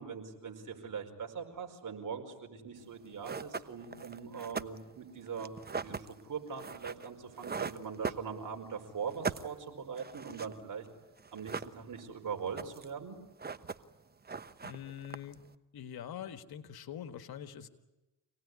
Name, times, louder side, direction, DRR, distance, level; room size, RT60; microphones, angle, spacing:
voice 1, 0.0-10.9 11.3-13.2, right 6 dB, 50° right, 4 dB, 5.0 m, -41 dB
sound 1, 2.8-2.9 3.2-8.7 9.0-10.9 11.2-12.1 12.4-13.0 13.2-14.0 14.2-15.5, right 5 dB, 25° right, 1.0 m, -40 dB
voice 2, 14.6-15.4 15.7-17.7, left 9 dB, 60° left, 8 dB, 1.9 m, -44 dB
26.5 x 19.0 x 9.8 m, 1.1 s
supercardioid pair, 75°, 41 cm